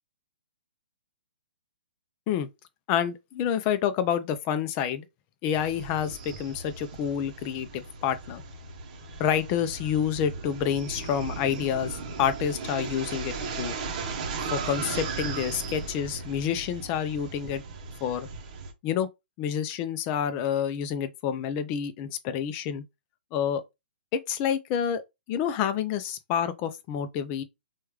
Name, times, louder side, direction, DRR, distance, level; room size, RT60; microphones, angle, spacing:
voice 1, 2.9-5.1 5.4-8.4 9.2-13.7 14.5-17.6 18.0-18.3 18.8-19.1 19.4-22.8 23.3-23.6 24.1-25.0 25.3-27.4, left 8 dB, 25° left, 0.4 m, -28 dB
sound 1, 5.5-18.7, right 4 dB, 40° right, 0.8 m, -37 dB
3.1 x 2.3 x 3.2 m
hypercardioid pair, 150°, 6 cm